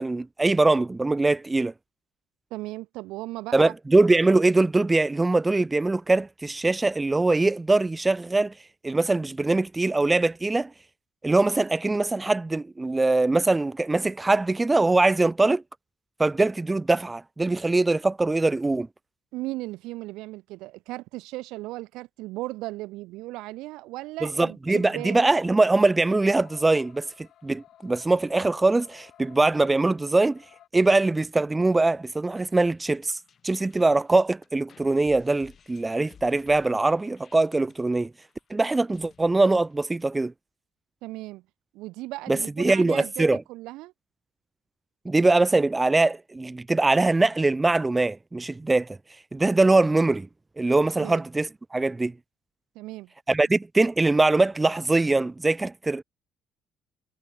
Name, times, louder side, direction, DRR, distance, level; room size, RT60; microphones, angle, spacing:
voice 1, 0.0-1.7 3.5-8.5 8.8-10.7 11.2-15.6 16.2-18.9 24.2-30.4 30.7-33.2 33.4-38.1 38.5-40.3 42.3-43.4 45.1-49.0 49.3-50.3 50.6-52.1 53.3-56.0, right 2 dB, 10° right, 0.3 m, -22 dB
voice 2, 2.5-3.7 19.3-25.2 41.0-41.4 41.7-43.9 51.0-51.2 52.8-53.1, right 19 dB, 80° right, 1.7 m, -36 dB
sound 1, 24.7-30.7, left 11 dB, 50° left, 7.4 m, -52 dB
sound 2, 32.5-40.0, left 7 dB, 30° left, 6.2 m, -57 dB
cardioid pair, 165°, 0 cm